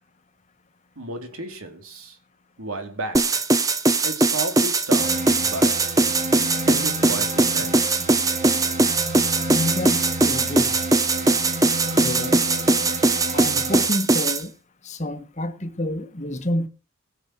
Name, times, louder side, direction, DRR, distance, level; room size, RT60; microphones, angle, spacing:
voice 1, 1.0-2.2 2.6-3.5 4.0-5.9 6.6-8.1, right 2 dB, 80° right, 2.9 m, -33 dB
sound 1, 3.1-14.4, right 2 dB, 15° right, 0.8 m, -20 dB
sound 2, 4.9-13.9, right 1 dB, 35° right, 2.3 m, -31 dB
voice 2, 9.5-10.8 12.0-12.4 13.3-14.5 14.8-16.7, left 1 dB, 30° left, 1.3 m, -28 dB
17.0 x 7.3 x 6.0 m
head